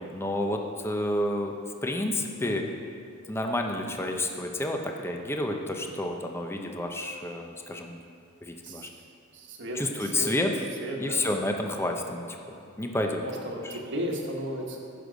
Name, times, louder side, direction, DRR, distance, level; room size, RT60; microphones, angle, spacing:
voice 1, 0.0-1.5 1.8-2.6 3.3-8.0 8.4-8.9 9.7-10.5 11.0-13.2 13.6-13.8, left 1 dB, 10° left, 3 dB, 0.7 m, -30 dB
voice 2, 9.3-10.3 10.8-11.3 13.2-14.8, equal, 55° right, 0 dB, 1.5 m, -35 dB
15.0 x 6.4 x 5.1 m, 2.5 s
head